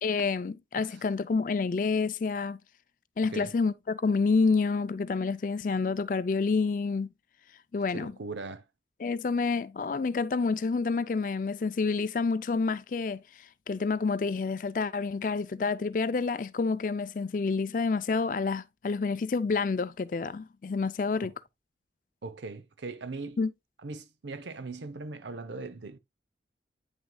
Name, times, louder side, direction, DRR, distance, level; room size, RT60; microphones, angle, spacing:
voice 1, 0.0-2.6 3.2-7.1 7.7-8.1 9.0-21.3 23.4-23.5, left 4 dB, 45° left, 0.4 m, -28 dB
voice 2, 7.9-8.6 21.2-21.3 22.2-23.4 23.8-26.0, right 3 dB, 85° right, 0.7 m, -40 dB
9.1 x 6.1 x 2.2 m
head